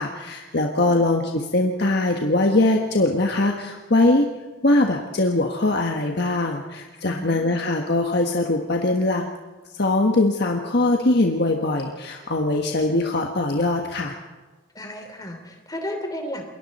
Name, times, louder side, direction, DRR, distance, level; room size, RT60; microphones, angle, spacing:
voice 1, 0.0-4.3 4.6-9.3 9.7-14.2, left 2 dB, 55° left, 2 dB, 1.4 m, -21 dB
voice 2, 7.0-7.5 14.7-16.4, equal, 20° left, 4 dB, 3.1 m, -33 dB
27.5 x 22.5 x 4.3 m, 1.3 s
head